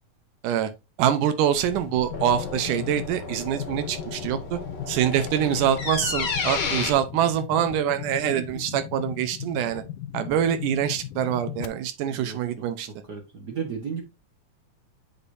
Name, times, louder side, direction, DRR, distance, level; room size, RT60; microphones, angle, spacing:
voice 1, 1.0-4.6 4.9-9.8 10.1-12.9, right 10 dB, 85° right, 2.3 m, -25 dB
sound 1, 1.5-6.9, left 4 dB, 50° left, 1.5 m, -32 dB
sound 2, 1.7-11.7, left 12 dB, 90° left, 2.3 m, -37 dB
voice 2, 8.3-8.8 12.1-12.6 13.1-14.0, right 6 dB, 55° right, 1.1 m, -35 dB
8.2 x 5.4 x 2.6 m
omnidirectional pair, 3.6 m